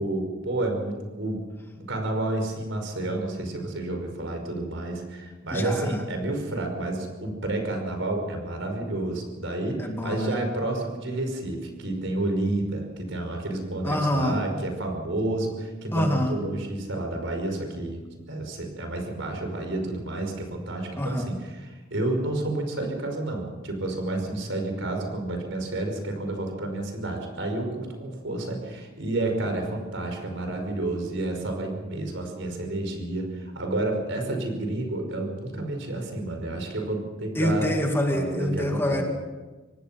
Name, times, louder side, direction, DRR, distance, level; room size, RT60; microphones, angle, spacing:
voice 1, 0.0-1.4 1.7-18.0 18.3-37.7 38.1-39.0, right 2 dB, 65° right, 4 dB, 5.4 m, -30 dB
voice 2, 5.5-6.0 9.8-10.4 13.8-14.4 15.9-16.4 21.0-21.3 37.3-39.0, left 1 dB, 10° left, 2 dB, 2.1 m, -26 dB
25.0 x 18.5 x 5.9 m, 1.2 s
head